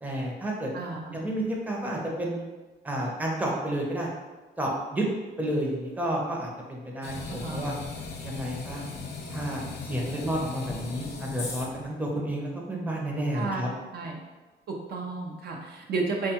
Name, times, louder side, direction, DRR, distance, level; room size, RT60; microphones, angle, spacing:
voice 1, 0.0-0.7 1.1-2.5 2.8-4.1 4.6-5.0 5.4-7.8 8.2-8.8 9.3-13.7, right 1 dB, 10° right, -2 dB, 0.6 m, -31 dB
voice 2, 0.7-1.2 7.3-7.6 13.3-13.6 13.9-14.1 14.7-16.3, right 3 dB, 55° right, 0 dB, 0.5 m, -32 dB
sound 1, 7.0-11.9, left 4 dB, 55° left, 0.6 m, -38 dB
3.3 x 2.2 x 2.8 m, 1.2 s
cardioid pair, 90°, 20 cm